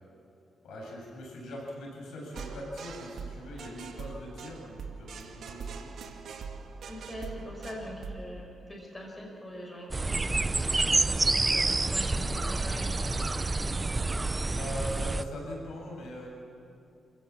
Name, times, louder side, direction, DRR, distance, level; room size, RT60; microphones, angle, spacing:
voice 1, 0.6-5.9 14.5-16.3, left 1 dB, 85° left, -2 dB, 7.9 m, -41 dB
sound 1, 2.3-8.1, right 5 dB, 70° right, 2.0 m, -42 dB
voice 2, 6.9-10.2 10.5-13.7, equal, 20° left, 0 dB, 5.7 m, -43 dB
sound 2, 9.9-15.2, right 3 dB, 20° right, 0.7 m, -28 dB
28.0 x 16.5 x 7.4 m, 2.6 s
cardioid pair, 115°, 0 cm